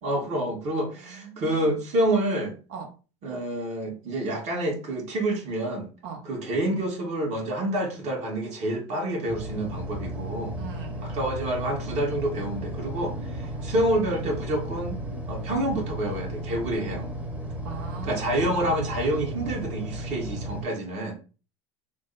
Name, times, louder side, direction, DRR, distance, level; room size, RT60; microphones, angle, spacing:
voice 1, 0.0-2.6 3.2-5.9 6.2-10.6 11.0-15.0 15.3-17.1 18.0-21.2, right 1 dB, 50° right, 1 dB, 1.7 m, -28 dB
voice 2, 1.1-1.7 2.7-2.9 6.0-6.2 10.6-11.1 13.4-13.8 17.6-18.3, right 6 dB, 65° right, 2 dB, 1.0 m, -40 dB
sound 1, 9.3-20.6, right 1 dB, 10° right, 0.9 m, -34 dB
3.3 x 2.2 x 4.0 m, 0.34 s
hypercardioid pair, 80°, 15 cm